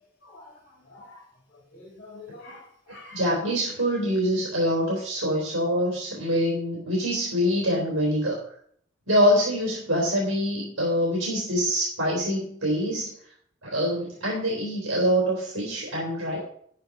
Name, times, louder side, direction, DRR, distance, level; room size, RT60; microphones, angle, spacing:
voice 1, 0.2-1.2 1.5-3.2, left 2 dB, 45° left, -1 dB, 2.7 m, -47 dB
voice 2, 3.1-8.4 9.1-13.1 13.6-16.4, equal, 80° right, -4 dB, 3.4 m, -25 dB
10.5 x 9.5 x 3.9 m, 0.63 s
head